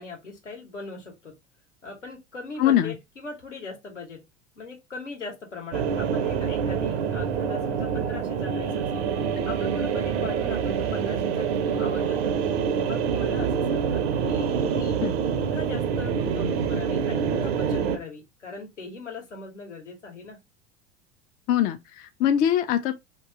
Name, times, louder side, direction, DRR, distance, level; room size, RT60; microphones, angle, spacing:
voice 1, 0.0-1.4 1.8-4.2 4.5-9.1 9.4-12.4 12.8-15.0 15.4-20.4, left 4 dB, 85° left, 1.4 m, -39 dB
voice 2, 2.6-2.9 15.0-15.1 21.5-22.9, left 10 dB, 25° left, 0.3 m, -22 dB
sound 1, 5.7-18.0, right 7 dB, 60° right, 0.7 m, -26 dB
2.9 x 2.9 x 3.5 m
figure-of-eight pair, 85°, 35 cm